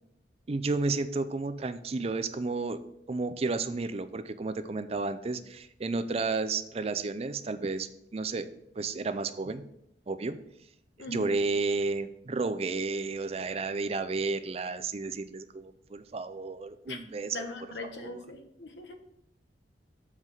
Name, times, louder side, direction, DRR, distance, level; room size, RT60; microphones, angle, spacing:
voice 1, 0.5-2.8 3.1-8.5 8.8-9.7 10.1-10.4 11.1-17.4 18.0-18.2, right 3 dB, 35° right, 11 dB, 0.4 m, -32 dB
voice 2, 11.0-11.3 16.9-17.0 17.3-18.9, left 2 dB, 85° left, 5 dB, 1.1 m, -40 dB
7.5 x 4.7 x 5.5 m, 0.79 s
head